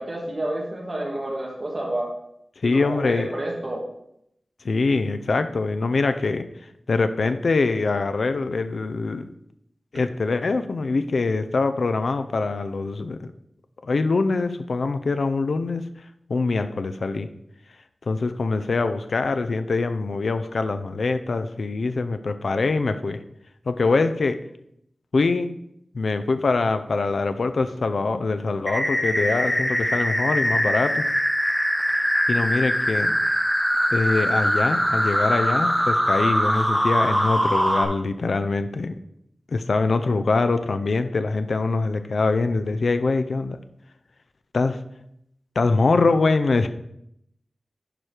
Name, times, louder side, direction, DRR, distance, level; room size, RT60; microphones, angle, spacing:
voice 1, 0.0-2.1 2.6-3.8, right 1 dB, 35° right, -3 dB, 2.8 m, -29 dB
voice 2, 2.6-3.3 4.6-6.5 6.9-9.2 9.9-13.3 13.8-15.9 16.3-17.3 18.1-23.2 23.7-24.4 25.1-25.6 25.9-31.0 32.3-33.1 33.9-38.9 39.5-43.6 44.5-44.8 45.6-46.7, left 3 dB, 70° left, 9 dB, 0.5 m, -23 dB
sound 1, 28.7-37.8, equal, 5° left, 1.5 m, -22 dB
11.0 x 5.0 x 4.5 m, 0.75 s
wide cardioid pair, 95°, 0 cm